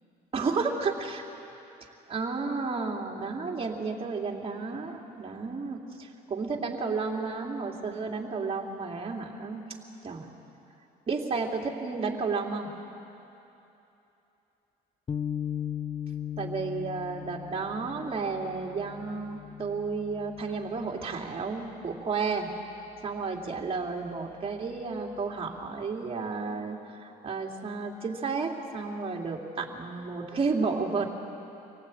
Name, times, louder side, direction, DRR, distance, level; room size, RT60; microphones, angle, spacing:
voice 1, 0.3-1.2 2.1-9.6 10.0-10.3 11.1-12.7 16.4-22.5 23.0-31.1, right 4 dB, 35° right, 0 dB, 2.9 m, -32 dB
sound 1, 15.1-21.5, left 9 dB, 30° left, 0.8 m, -38 dB
25.5 x 18.0 x 8.7 m, 2.9 s
cardioid pair, 110°, 17 cm